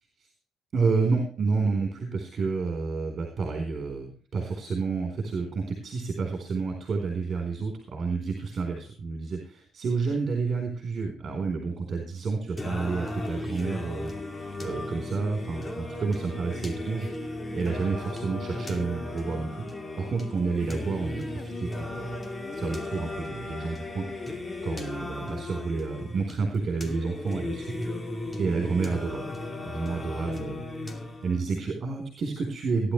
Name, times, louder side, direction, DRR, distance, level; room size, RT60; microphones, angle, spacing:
voice 1, 0.7-17.1 17.5-19.5 20.0-22.2 22.5-24.1 24.6-27.7 28.4-29.3 29.6-30.6 31.2-32.9, right 4 dB, 45° right, 4 dB, 4.0 m, -30 dB
Singing, 12.6-31.6, left 2 dB, 20° left, 2.6 m, -36 dB
17.5 x 11.0 x 3.3 m, 0.41 s
cardioid pair, 110°, 0 cm